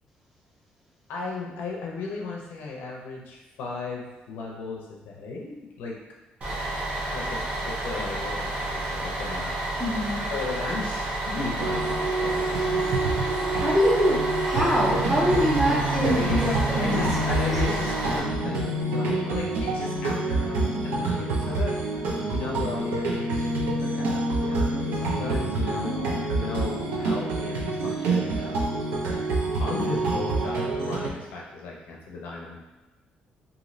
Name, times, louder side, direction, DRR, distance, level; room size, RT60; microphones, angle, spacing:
voice 1, 1.1-6.0 7.1-9.6 10.3-12.8 16.0-26.0 26.3-28.8 29.6-32.6, left 3 dB, 85° left, -1 dB, 0.5 m, -36 dB
Bus, 6.4-18.2, right 1 dB, 45° right, 0.8 m, -30 dB
voice 2, 9.8-10.2 13.5-17.1 25.8-26.1, equal, 5° right, -4 dB, 0.7 m, -24 dB
sound 1, 11.6-31.1, right 2 dB, 90° right, 0.5 m, -27 dB
3.0 x 2.6 x 2.5 m, 1.1 s
cardioid pair, 130°, 3 cm